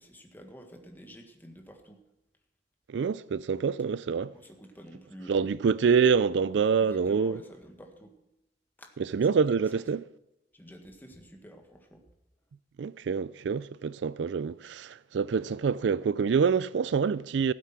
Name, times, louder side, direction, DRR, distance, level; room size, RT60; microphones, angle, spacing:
voice 1, 0.0-2.0 4.2-5.5 6.9-8.1 8.8-8.9 9.3-9.4 9.7-9.8 10.5-12.0, equal, 10° left, 1.7 m, -49 dB
voice 2, 2.9-4.3 5.3-7.4 9.0-10.1 12.8-17.5, right 6 dB, 80° right, 0.4 m, -26 dB
15.0 x 8.4 x 5.9 m
head